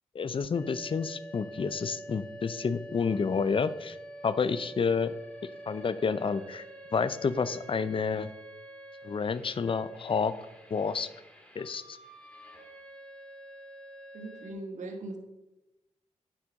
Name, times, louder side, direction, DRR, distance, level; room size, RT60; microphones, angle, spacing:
voice 1, 0.1-4.0 4.2-5.1 5.7-6.6 6.9-8.3 9.0-10.3 10.7-11.1 11.6-12.0, left 5 dB, 45° left, 14 dB, 0.6 m, -29 dB
sound 1, 0.5-14.5, right 1 dB, 10° left, 2.8 m, -47 dB
voice 2, 14.1-15.2, right 2 dB, 85° right, 4 dB, 1.3 m, -39 dB
9.8 x 4.4 x 6.3 m, 0.98 s
cardioid pair, 55°, 12 cm